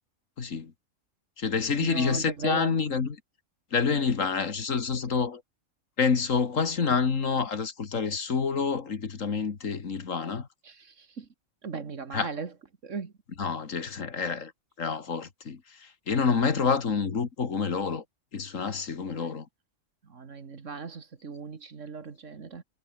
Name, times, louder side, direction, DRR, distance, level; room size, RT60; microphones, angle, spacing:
voice 1, 0.4-0.7 1.4-3.2 3.7-5.4 6.0-10.5 12.1-12.3 13.4-14.5 14.8-18.0 18.3-19.5, left 5 dB, 75° left, 2.2 m, -28 dB
voice 2, 1.8-2.7 10.7-11.3 11.6-12.5 12.8-13.1 19.2-19.3 20.1-22.6, right 5 dB, 65° right, 2.2 m, -37 dB
omnidirectional pair, 1.4 m